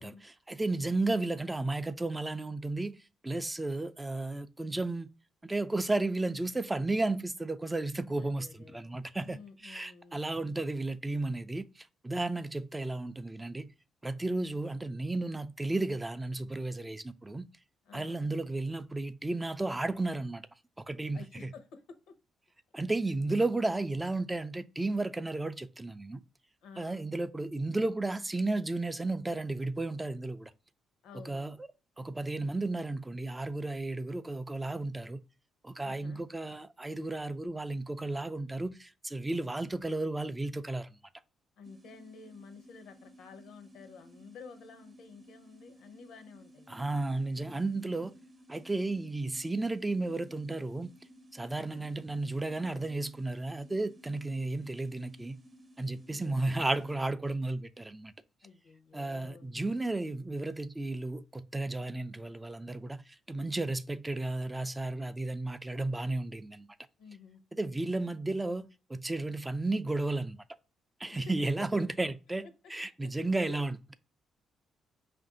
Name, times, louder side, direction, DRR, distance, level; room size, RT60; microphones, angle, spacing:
voice 1, 0.0-3.0 3.2-5.1 5.4-13.7 14.0-17.5 17.9-20.4 20.9-21.5 22.7-26.2 26.8-30.5 31.2-31.6 32.0-35.2 35.6-40.9 46.7-48.2 48.5-50.9 51.3-55.4 55.8-58.1 58.9-66.7 67.5-70.4 71.0-73.9, right 2 dB, 15° right, 0.3 m, -33 dB
voice 2, 8.1-8.9 9.2-10.2 12.4-12.6 17.8-18.3 21.1-22.1 26.6-27.2 31.0-31.5 35.8-36.2 41.6-46.9 51.5-51.9 56.1-56.4 58.4-59.6 67.0-67.4 71.1-71.3 71.6-71.9 73.4-73.6, left 5 dB, 85° left, 0.7 m, -51 dB
sound 1, 41.6-57.0, equal, 35° right, 0.8 m, -57 dB
5.3 x 2.5 x 3.7 m
cardioid pair, 90°, 0 cm